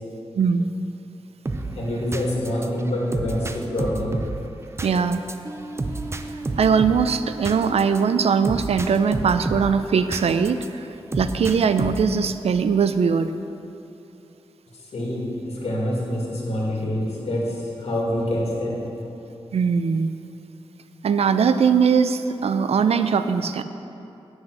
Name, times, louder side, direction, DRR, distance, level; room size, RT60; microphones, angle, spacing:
voice 1, 0.4-0.7 4.8-5.2 6.6-10.6 11.2-13.3 19.5-20.1 21.0-23.6, right 6 dB, 85° right, 11 dB, 0.4 m, -20 dB
sound 1, 1.4-10.7 11.1-12.2, right 2 dB, 25° right, 0.5 m, -31 dB
voice 2, 1.7-4.2 14.9-18.9, left 1 dB, 90° left, -4 dB, 2.1 m, -26 dB
9.9 x 6.2 x 6.2 m, 2.8 s
wide cardioid pair, 85°, 10 cm